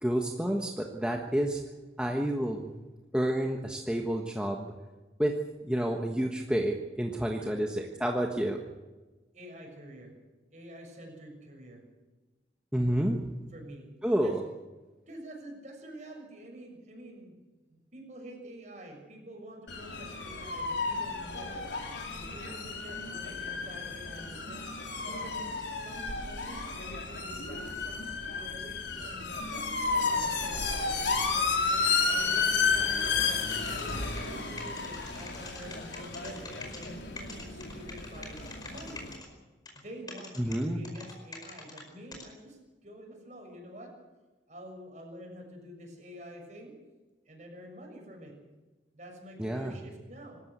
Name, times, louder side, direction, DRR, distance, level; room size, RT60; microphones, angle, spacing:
voice 1, 0.0-1.6 2.0-2.7 3.1-4.7 5.2-5.3 5.6-8.6 12.7-13.2 14.0-14.4 40.4-40.8 49.4-49.8, right 1 dB, 5° right, 1 dB, 1.3 m, -29 dB
voice 2, 9.3-10.1 10.5-11.8 13.5-13.9 14.2-14.4 15.1-17.4 17.7-21.6 22.1-24.6 25.0-29.3 29.8-32.9 33.7-39.1 39.7-43.9 44.5-46.8 47.3-48.4 48.9-50.4, right 1 dB, 40° right, 2 dB, 6.6 m, -47 dB
sound 1, 19.7-39.2, left 4 dB, 80° left, 3.9 m, -32 dB
sound 2, 33.1-36.9 37.2-39.3 39.7-39.8 40.1-41.8 42.1-42.2, left 3 dB, 20° left, 4.8 m, -44 dB
26.0 x 13.5 x 8.1 m, 1.2 s
head